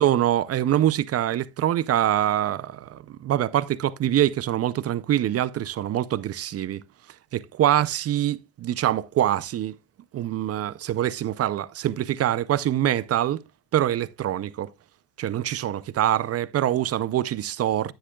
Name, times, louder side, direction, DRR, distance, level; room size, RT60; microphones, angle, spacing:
voice 1, 0.0-6.8 7.3-9.8 10.1-13.4 13.7-14.7 15.2-17.9, right 12 dB, 35° right, 0.4 m, -24 dB
10.5 x 9.9 x 2.2 m
cardioid pair, 145°, 45 cm